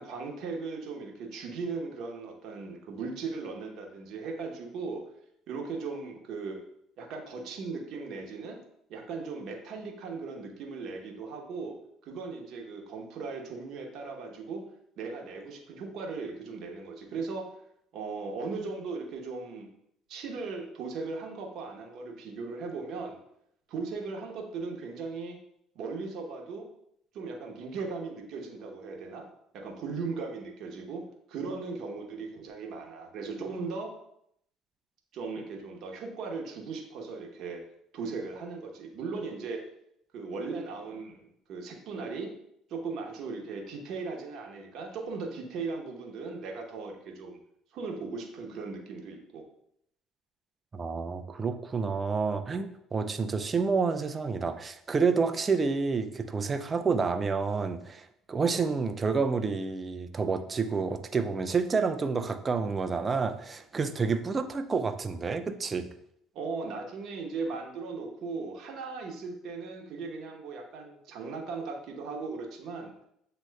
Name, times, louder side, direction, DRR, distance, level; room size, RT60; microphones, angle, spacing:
voice 1, 0.0-5.0 5.5-6.6 7.0-8.6 8.9-11.8 12.0-14.7 15.0-17.5 17.9-19.7 20.1-23.2 23.7-25.4 25.7-26.7 27.1-29.3 29.5-33.9 35.1-37.6 37.9-39.7 40.1-42.3 42.7-47.4 47.7-49.4 66.3-72.9, right 4 dB, 65° right, 2 dB, 1.0 m, -38 dB
voice 2, 50.7-65.9, right 4 dB, 30° right, 9 dB, 0.5 m, -29 dB
7.3 x 2.9 x 2.3 m, 0.73 s
hypercardioid pair, 70°, 0 cm